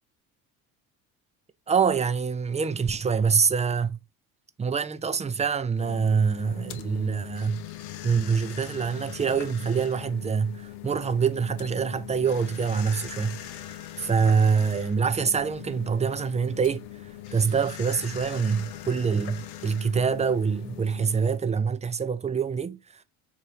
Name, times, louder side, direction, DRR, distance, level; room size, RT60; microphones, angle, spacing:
voice 1, 1.7-4.0 4.6-7.6 8.0-16.8 17.3-23.0, right 6 dB, 15° right, 0.4 m, -25 dB
sound 1, 5.8-21.4, left 12 dB, 80° left, 0.7 m, -41 dB
4.2 x 2.8 x 3.2 m
hypercardioid pair, 60°, 42 cm